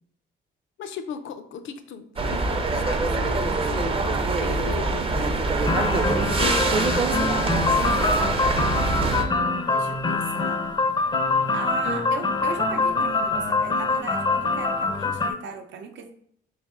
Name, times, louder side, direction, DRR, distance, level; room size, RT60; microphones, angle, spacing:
voice 1, 0.8-5.7 6.4-8.1, left 6 dB, 75° left, 8 dB, 0.5 m, -37 dB
sound 1, 2.2-9.2, right 3 dB, 30° right, 0.5 m, -24 dB
sound 2, 5.6-15.3, left 3 dB, 20° left, 0.4 m, -24 dB
voice 2, 8.8-10.7 11.5-16.1, right 5 dB, 70° right, 6 dB, 0.6 m, -37 dB
3.3 x 2.8 x 3.6 m, 0.66 s
cardioid pair, 90°, 20 cm